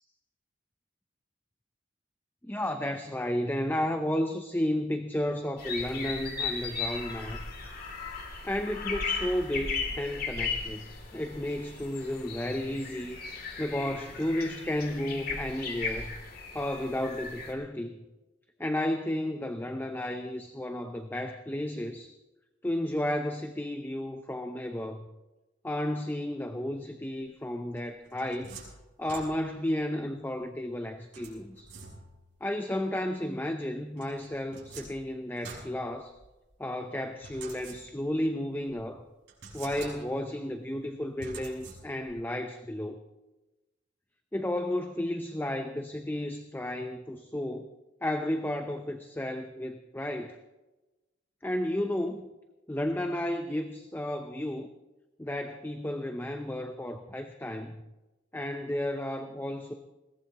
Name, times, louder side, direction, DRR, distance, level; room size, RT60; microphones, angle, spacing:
voice 1, 2.4-7.4 8.4-13.2 13.6-16.2 16.5-18.0 18.6-22.1 22.6-25.1 25.6-28.5 29.0-31.7 32.4-36.1 36.6-39.0 39.5-43.0 44.3-47.7 48.0-50.4 51.4-52.3 52.7-54.7 55.2-57.8 58.3-59.7, left 1 dB, 10° left, 6 dB, 0.7 m, -33 dB
sound 1, 5.6-17.5, left 4 dB, 55° left, 3.0 m, -36 dB
sound 2, 27.8-29.7 31.1-32.3 34.0-36.5 37.2-38.2 38.7-38.8 39.3-40.4 41.2-42.2, right 4 dB, 70° right, 6.0 m, -47 dB
21.5 x 18.0 x 3.0 m, 1.1 s
head